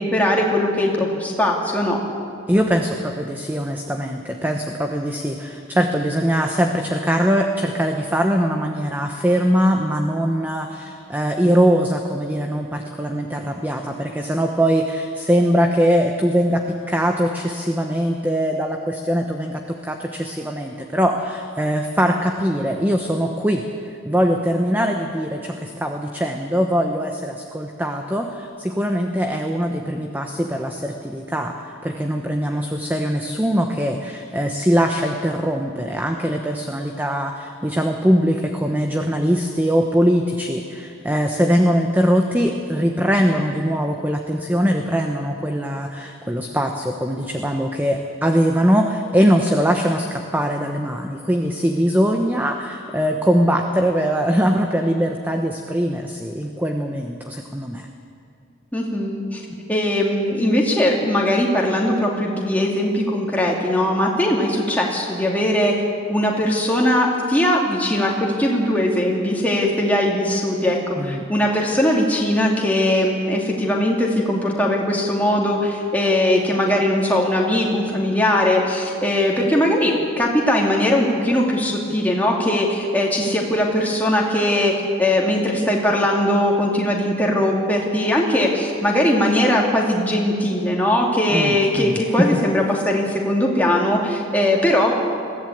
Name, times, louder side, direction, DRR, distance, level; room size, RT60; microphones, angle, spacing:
voice 1, 0.0-2.0 58.7-59.4 59.7-65.7 66.1-84.7 85.0-94.9, left 1 dB, 10° left, -2 dB, 2.5 m, -20 dB
voice 2, 2.5-57.9 59.5-59.6 71.0-71.3 91.3-92.4, equal, 10° right, 3 dB, 1.0 m, -21 dB
22.0 x 15.5 x 8.7 m, 2.4 s
head